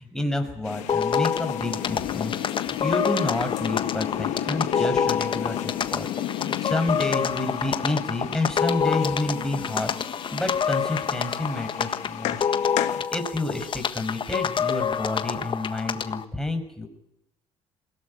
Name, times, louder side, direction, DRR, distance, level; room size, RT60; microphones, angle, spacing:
voice 1, 0.0-2.4 2.7-6.1 6.4-9.9 10.3-12.4 12.9-16.9, left 2 dB, 5° left, 5 dB, 5.7 m, -29 dB
sound 1, 0.6-13.0, left 12 dB, 80° left, 1.6 m, -33 dB
sound 2, 0.9-16.2, left 7 dB, 45° left, 1.6 m, -27 dB
21.0 x 17.5 x 9.9 m, 0.82 s
supercardioid pair, 75°, 12 cm